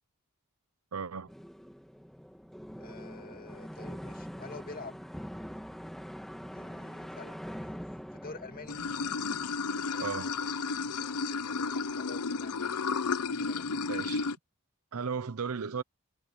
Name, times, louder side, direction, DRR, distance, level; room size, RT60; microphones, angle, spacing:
voice 1, 0.9-1.3 10.0-10.3 13.9-14.3 14.9-15.8, right 5 dB, 75° right, 0.8 m, -35 dB
sound 1, 1.3-10.1, equal, ahead, 1.8 m, -44 dB
voice 2, 2.8-5.0 6.5-7.8 8.1-8.8 12.0-12.9 13.4-13.9, left 3 dB, 40° left, 2.1 m, -47 dB
Water / Sink (filling or washing), 8.7-14.4, left 4 dB, 85° left, 0.8 m, -32 dB
head